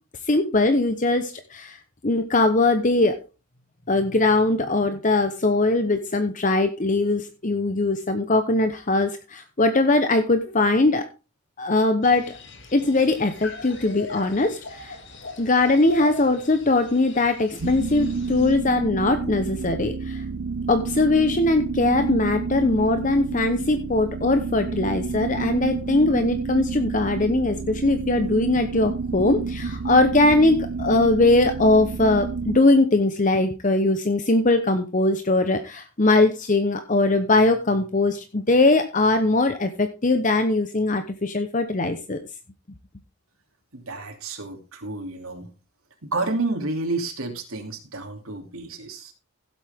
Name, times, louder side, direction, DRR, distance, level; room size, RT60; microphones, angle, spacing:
voice 1, 0.3-3.2 3.9-11.0 11.6-12.4 12.7-15.0 15.4-20.2 20.7-42.2, left 2 dB, 35° left, 8 dB, 0.9 m, -21 dB
sound 1, 12.0-18.5, left 3 dB, 55° left, 2.5 m, -39 dB
sound 2, 17.6-32.6, right 4 dB, 65° right, 0.5 m, -30 dB
voice 2, 43.7-45.5 46.0-49.1, right 3 dB, 85° right, 3 dB, 2.8 m, -30 dB
16.0 x 8.2 x 3.6 m, 0.29 s
head